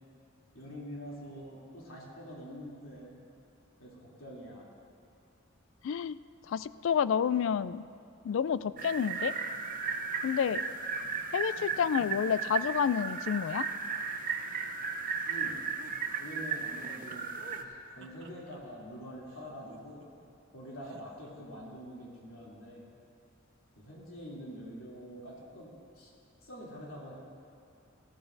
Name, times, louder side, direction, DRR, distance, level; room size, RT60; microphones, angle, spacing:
voice 1, 0.5-3.3 3.8-4.7 15.2-15.6 16.2-17.3 17.6-20.0 20.5-22.8 23.8-26.1 26.4-27.1, equal, 85° left, -5 dB, 3.0 m, -45 dB
voice 2, 5.8-6.2 6.5-7.8 8.2-9.3 10.2-10.6 11.3-13.7, left 7 dB, 65° left, 16 dB, 0.3 m, -29 dB
sound 1, 8.8-17.6, right 5 dB, 40° right, 0.7 m, -35 dB
sound 2, 15.8-16.0 17.3-18.6 19.3-20.3 20.8-21.3, right 3 dB, 65° right, 1.0 m, -54 dB
18.5 x 15.0 x 2.6 m, 2.5 s
head